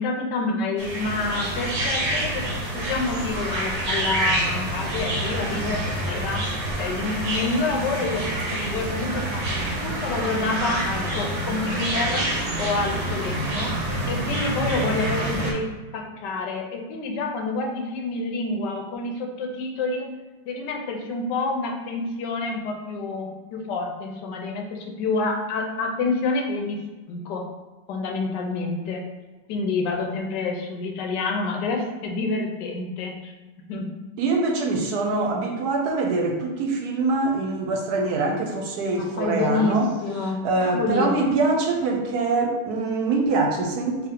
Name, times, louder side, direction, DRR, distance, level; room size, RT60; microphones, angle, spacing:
voice 1, 0.0-2.4 2.7-5.8 6.0-6.4 6.8-9.5 9.8-12.2 12.6-15.7 15.9-20.1 20.5-26.8 27.1-27.4 27.9-29.0 29.5-33.3 33.7-33.9 38.9-41.2, left 3 dB, 85° left, 1 dB, 1.3 m, -28 dB
sound 1, 0.8-15.5, right 1 dB, 50° right, 0.9 m, -27 dB
voice 2, 34.2-39.9 40.2-44.1, right 3 dB, 70° right, 2 dB, 1.1 m, -24 dB
3.6 x 2.8 x 3.7 m, 1.2 s
omnidirectional pair, 1.8 m